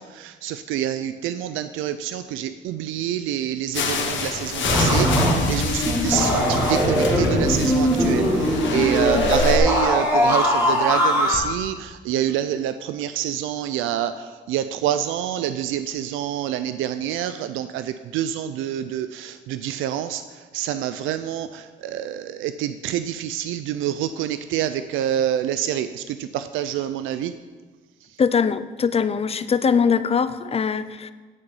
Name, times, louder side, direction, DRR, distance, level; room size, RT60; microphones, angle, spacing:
voice 1, 0.0-5.1 5.5-14.1 14.5-20.2 20.5-27.3, right 11 dB, 90° right, 11 dB, 0.4 m, -27 dB
sound 1, 3.7-9.6, left 4 dB, 70° left, 1.3 m, -28 dB
sound 2, 4.6-11.4, equal, 10° right, 2.5 m, -20 dB
voice 2, 28.2-31.1, left 6 dB, 30° left, 14 dB, 0.5 m, -22 dB
9.8 x 5.3 x 7.0 m, 1.4 s
cardioid pair, 90°, 20 cm